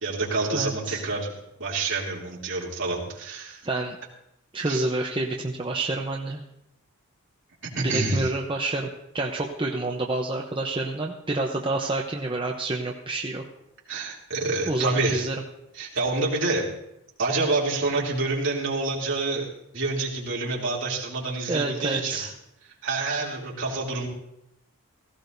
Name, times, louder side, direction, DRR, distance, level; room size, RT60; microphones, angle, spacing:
voice 1, 0.0-1.3 1.6-3.6 4.6-4.8 7.6-8.3 13.9-15.2 15.7-16.7 17.2-19.5 19.7-22.2 22.8-24.1, right 3 dB, 60° right, -4 dB, 3.0 m, -27 dB
voice 2, 0.5-1.0 3.6-4.0 4.5-6.4 7.8-8.9 9.1-13.4 14.7-15.3 21.5-22.3, right 2 dB, 25° right, 0 dB, 0.7 m, -28 dB
17.0 x 15.5 x 2.7 m, 0.81 s
head